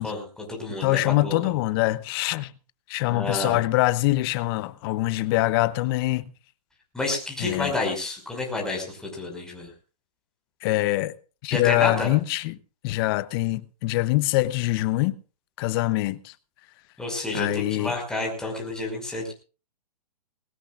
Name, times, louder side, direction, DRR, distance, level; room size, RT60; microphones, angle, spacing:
voice 1, 0.0-1.5 3.1-3.6 6.9-9.7 11.5-12.1 17.0-19.3, left 2 dB, 5° left, 5.4 m, -30 dB
voice 2, 0.8-2.5 2.9-6.2 7.4-7.7 10.6-11.1 11.4-12.6 12.8-15.2 15.6-16.3 17.3-17.9, left 18 dB, 35° left, 0.8 m, -24 dB
20.5 x 19.0 x 2.5 m
hypercardioid pair, 145°, 20 cm